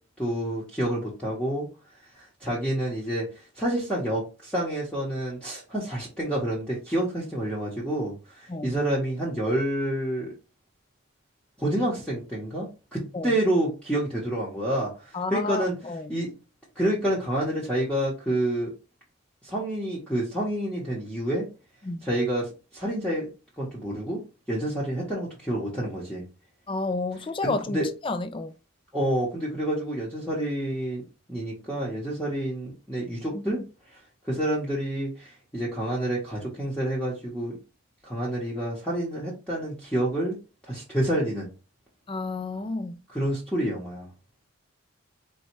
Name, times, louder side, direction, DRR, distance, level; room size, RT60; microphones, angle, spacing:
voice 1, 0.2-1.7 2.2-10.3 11.6-15.7 16.1-16.3 16.8-18.7 19.4-21.5 22.0-23.3 23.6-24.2 24.5-26.2 27.4-27.9 28.9-31.0 31.3-33.6 33.9-34.0 34.2-37.6 38.0-40.4 40.7-41.5 43.1-44.1, right 1 dB, 5° left, 0.9 m, -28 dB
voice 2, 15.1-16.1 21.8-22.1 26.7-28.5 33.3-33.6 42.1-43.0, left 3 dB, 25° left, 0.3 m, -31 dB
4.1 x 2.3 x 4.4 m
head